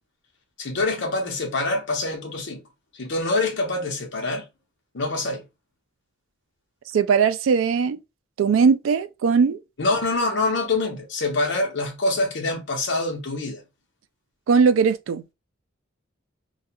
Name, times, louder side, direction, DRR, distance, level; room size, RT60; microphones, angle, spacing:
voice 1, 0.6-2.6 3.0-4.5 4.9-5.4 9.8-13.6, left 2 dB, 60° left, 0.7 m, -25 dB
voice 2, 6.9-8.0 8.4-9.6 14.5-15.2, right 5 dB, 70° right, 0.3 m, -19 dB
2.3 x 2.3 x 2.7 m
head